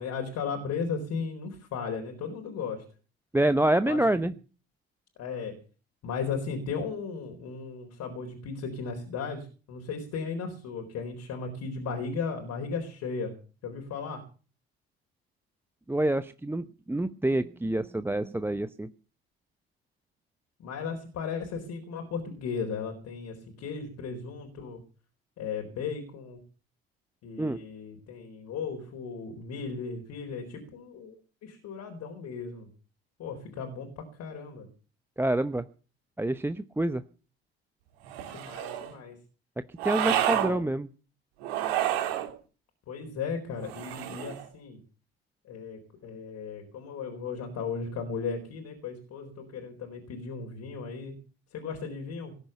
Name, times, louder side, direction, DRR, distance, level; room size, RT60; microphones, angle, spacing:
voice 1, 0.0-2.8 3.9-4.3 5.2-5.5 6.0-13.3 13.6-14.2 20.6-24.8 25.4-26.4 27.2-31.2 31.4-32.7 33.2-34.7 38.3-39.2 40.0-40.6 42.9-44.8 45.4-51.1 51.5-52.3, left 5 dB, 55° left, 3 dB, 4.3 m, -36 dB
voice 2, 3.3-4.3 15.9-18.9 27.4-27.6 35.2-35.7 36.2-37.0 39.8-40.9, right 1 dB, 5° right, 12 dB, 0.8 m, -27 dB
sound 1, 38.1-38.9 39.8-40.5 41.4-42.3 43.6-44.5, right 12 dB, 75° right, 2.8 m, -29 dB
19.0 x 10.5 x 6.7 m, 0.38 s
figure-of-eight pair, 55°, 32 cm